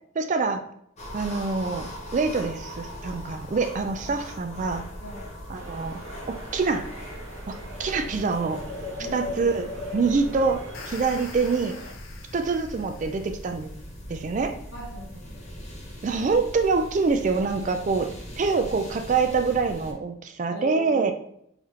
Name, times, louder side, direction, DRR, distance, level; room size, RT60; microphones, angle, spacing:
voice 1, 0.2-0.6 1.1-4.8 5.5-6.0 6.3-6.9 7.5-8.6 9.1-11.8 12.3-13.7 14.1-14.6 16.0-18.1 18.4-21.1, right 4 dB, 40° right, 7 dB, 0.3 m, -25 dB
sound 1, 1.0-19.9, left 1 dB, 35° left, 1.0 m, -39 dB
sound 2, 5.5-11.9, right 2 dB, 85° right, 0.8 m, -45 dB
voice 2, 9.0-9.5 14.7-15.5 20.5-21.1, right 1 dB, 55° left, -2 dB, 1.4 m, -38 dB
sound 3, 10.5-13.7, left 5 dB, 90° left, 0.6 m, -46 dB
4.6 x 3.4 x 2.8 m, 0.71 s
head